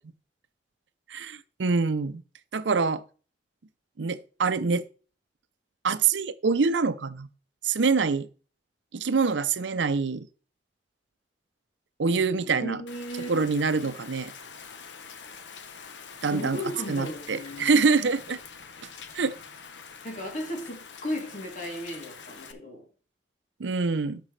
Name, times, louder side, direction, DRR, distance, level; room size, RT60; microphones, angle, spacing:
voice 1, 1.1-2.2 2.5-3.0 4.0-4.8 5.8-7.3 7.6-8.3 8.9-10.3 12.0-12.8 13.3-14.3 16.2-16.6 16.9-18.4 19.1-19.3 23.6-24.2, right 4 dB, 85° right, 0.6 m, -25 dB
voice 2, 12.6-13.5 16.3-17.7 20.0-22.8, left 1 dB, 45° left, 3.1 m, -35 dB
Rain, 12.9-22.5, left 6 dB, 75° left, 0.9 m, -45 dB
11.5 x 6.0 x 3.3 m
head